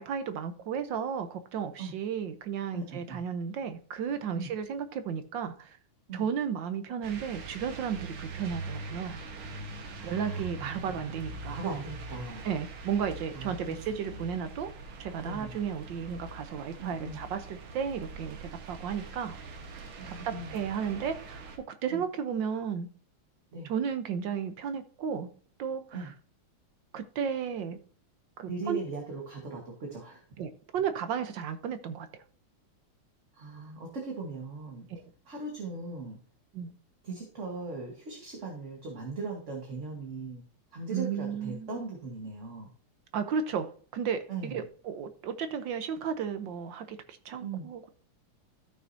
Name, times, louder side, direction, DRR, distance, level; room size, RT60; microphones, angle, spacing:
voice 1, 0.0-5.8 6.1-9.2 10.0-11.6 12.4-14.7 15.0-19.3 20.1-21.4 21.7-22.9 23.6-25.3 25.6-26.1 26.9-27.8 28.4-28.8 30.4-32.1 34.9-35.0 36.5-36.7 40.9-41.8 43.1-47.9, right 7 dB, 70° right, 1.3 m, -34 dB
voice 2, 2.7-3.2 4.4-4.5 6.1-6.2 8.0-8.1 9.9-11.2 11.5-12.4 13.3-13.8 14.1-14.3 15.2-15.7 16.8-17.2 20.0-20.5 21.9-22.0 23.5-23.7 25.9-26.1 28.5-30.2 33.3-34.9 35.3-36.2 37.0-40.4 40.7-42.7 44.3-44.6 47.4-47.7, right 3 dB, 40° right, 1.6 m, -39 dB
sound 1, 7.0-21.6, right 3 dB, 90° right, 2.2 m, -43 dB
14.0 x 6.0 x 2.7 m
omnidirectional pair, 2.3 m